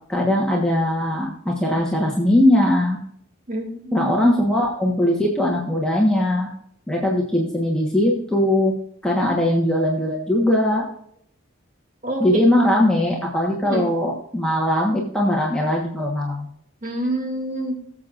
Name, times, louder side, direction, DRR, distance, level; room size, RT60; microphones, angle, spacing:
voice 1, 0.1-3.0 3.9-6.5 6.9-8.7 9.0-10.8 12.2-16.5, left 1 dB, 5° left, -3 dB, 1.3 m, -20 dB
voice 2, 3.5-4.4 12.0-12.4 13.6-13.8 16.8-17.8, right 1 dB, 40° right, 1 dB, 2.5 m, -27 dB
19.0 x 7.5 x 2.6 m, 0.68 s
head